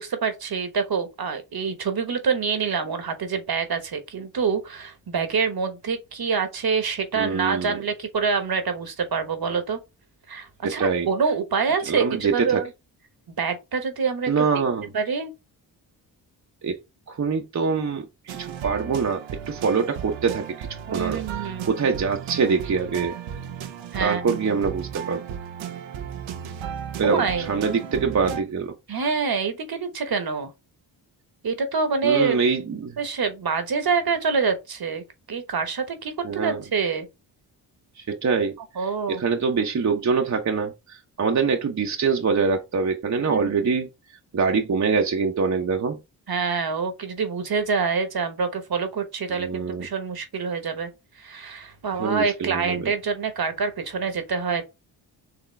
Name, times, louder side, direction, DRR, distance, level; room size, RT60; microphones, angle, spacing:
voice 1, 0.0-9.8 10.3-12.7 13.4-14.5 14.9-15.3 20.9-21.7 23.9-24.4 27.0-27.5 28.9-30.5 31.4-32.4 33.0-37.1 38.8-39.2 43.3-43.6 46.3-50.9 51.2-54.6, right 5 dB, 55° right, 1.2 m, -26 dB
voice 2, 7.1-7.8 10.6-11.1 11.9-12.6 14.3-14.9 16.6-23.2 24.0-25.2 27.0-28.7 32.0-33.0 36.2-36.6 38.0-46.0 49.4-49.9 52.0-52.9, right 5 dB, 40° right, 0.8 m, -25 dB
sound 1, 18.3-28.4, right 8 dB, 85° right, 0.7 m, -35 dB
4.9 x 3.0 x 3.2 m
cardioid pair, 50°, 45 cm